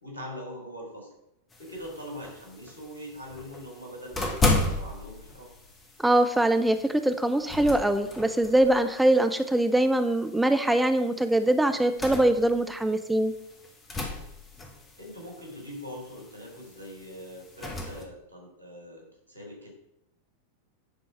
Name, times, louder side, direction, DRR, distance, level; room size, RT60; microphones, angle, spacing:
voice 1, 0.0-1.1 1.6-4.4 4.7-5.5 15.0-19.7, equal, 85° left, -1 dB, 3.5 m, -42 dB
sound 1, 1.5-18.0, left 2 dB, 20° left, 1.7 m, -35 dB
voice 2, 6.0-13.3, right 1 dB, 5° right, 8 dB, 0.7 m, -23 dB
10.5 x 3.9 x 5.9 m, 0.83 s
figure-of-eight pair, 90°, 0 cm